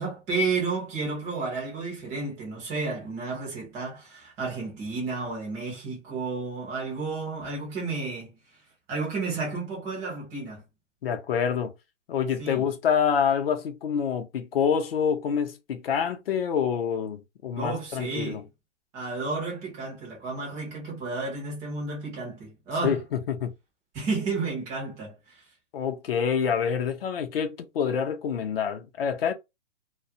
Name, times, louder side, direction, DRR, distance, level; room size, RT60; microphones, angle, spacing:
voice 1, 0.0-8.4 8.9-10.6 12.4-12.6 17.5-18.5 18.9-23.0 23.9-25.4, right 3 dB, 10° right, 0.4 m, -32 dB
voice 2, 11.0-11.7 12.1-18.4 22.8-23.5 25.7-29.3, left 7 dB, 55° left, 0.7 m, -27 dB
2.3 x 2.1 x 2.6 m
hypercardioid pair, 150°, 36 cm